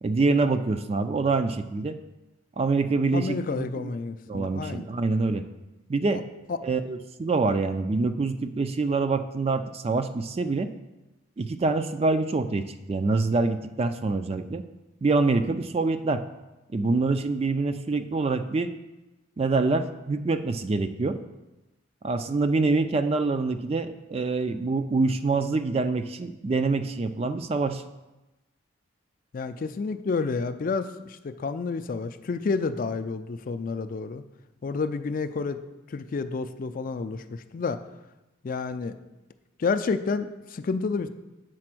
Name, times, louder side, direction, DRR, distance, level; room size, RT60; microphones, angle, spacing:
voice 1, 0.0-2.0 2.6-3.9 4.3-5.5 5.9-6.2 6.6-10.7 11.4-14.6 15.0-16.2 16.7-18.7 19.4-21.2 22.0-27.8, right 3 dB, 30° right, 9 dB, 0.3 m, -25 dB
voice 2, 3.1-4.9 6.5-6.6 29.3-34.2 34.6-35.6 35.9-37.8 38.4-39.0 39.6-41.1, left 4 dB, 45° left, 10 dB, 0.3 m, -30 dB
7.6 x 4.2 x 6.0 m, 1.0 s
head